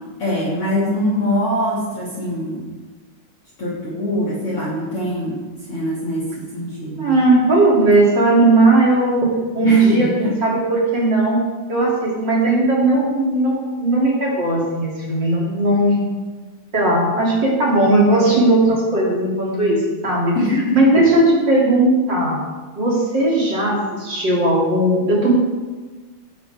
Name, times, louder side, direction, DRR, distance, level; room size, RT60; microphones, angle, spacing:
voice 1, 0.2-2.6 3.6-5.4 5.7-6.3 6.5-7.2 9.6-10.3 20.3-20.8, left 1 dB, 40° left, -6 dB, 3.4 m, -23 dB
voice 2, 7.0-11.4 11.7-16.0 16.7-22.4 22.8-25.3, right 2 dB, 30° right, -4 dB, 3.7 m, -17 dB
17.0 x 12.0 x 3.8 m, 1.3 s
omnidirectional pair, 3.9 m